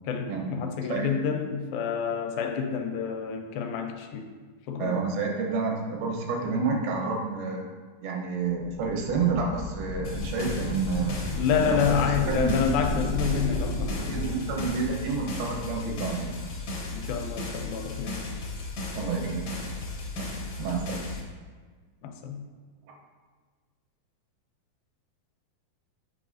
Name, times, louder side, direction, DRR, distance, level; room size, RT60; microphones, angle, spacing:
voice 1, 0.0-4.3 4.7-5.0 11.4-14.2 16.9-18.3 22.0-22.5, left 6 dB, 85° left, 4 dB, 2.3 m, -28 dB
voice 2, 4.8-7.6 8.0-11.2 11.6-12.7 14.0-16.4 19.0-19.5 20.2-21.1, right 4 dB, 90° right, 1 dB, 2.8 m, -29 dB
sound 1, 8.5-15.0, left 2 dB, 45° left, 0.6 m, -33 dB
sound 2, 10.0-21.2, left 2 dB, 65° left, 1.2 m, -35 dB
8.6 x 4.8 x 2.6 m, 1.5 s
omnidirectional pair, 4.2 m